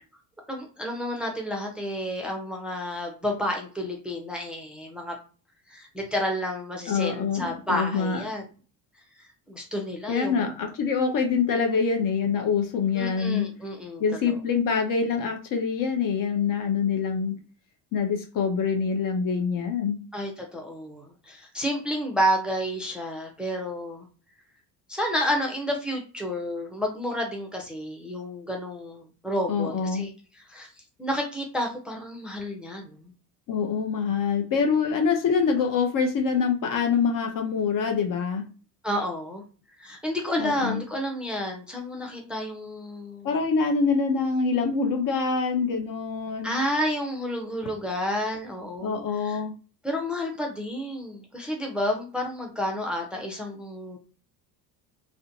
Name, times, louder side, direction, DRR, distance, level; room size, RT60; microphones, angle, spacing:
voice 1, 0.5-5.2 5.7-8.4 9.5-10.4 12.9-14.0 20.1-24.1 24.9-30.1 30.4-30.7 31.0-33.1 38.8-39.4 39.8-43.4 46.4-49.0 49.2-49.4 49.8-54.0, equal, ahead, 1 dB, 0.6 m, -30 dB
voice 2, 6.9-8.2 10.1-13.5 14.0-17.4 17.9-20.0 29.5-30.1 33.5-38.5 40.4-40.8 43.2-46.5 48.8-49.5, left 5 dB, 40° left, 4 dB, 0.6 m, -25 dB
2.4 x 2.2 x 2.6 m, 0.36 s
hypercardioid pair, 75°, 49 cm